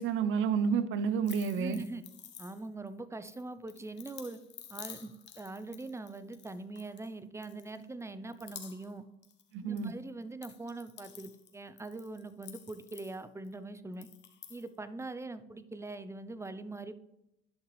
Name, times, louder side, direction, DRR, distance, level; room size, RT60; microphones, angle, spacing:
voice 1, 0.0-1.8 9.5-9.9, right 6 dB, 85° right, 13 dB, 0.7 m, -30 dB
sound 1, 1.2-2.9 3.3-7.1 7.4-8.0 8.3-9.0 9.2-9.9 10.2-13.5 13.9-14.7, left 9 dB, 65° left, 1.2 m, -51 dB
voice 2, 1.5-2.0 2.4-4.4 4.7-9.0 9.6-14.1 14.5-17.0, right 2 dB, 15° right, 13 dB, 0.6 m, -42 dB
11.0 x 5.8 x 3.2 m, 0.85 s
cardioid pair, 90°, 20 cm